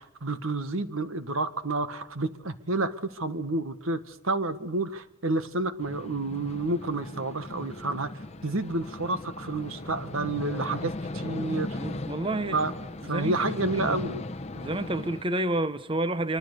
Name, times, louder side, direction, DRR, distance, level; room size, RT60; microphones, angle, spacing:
voice 1, 0.0-8.1 8.4-11.8 12.5-12.7 13.0-14.2, right 2 dB, 80° right, 1.7 m, -30 dB
sound 1, 5.8-15.2, left 2 dB, 30° left, 1.0 m, -37 dB
voice 2, 11.7-12.6 13.1-14.0 14.5-16.4, right 1 dB, 25° right, 0.9 m, -30 dB
25.5 x 24.5 x 6.8 m
head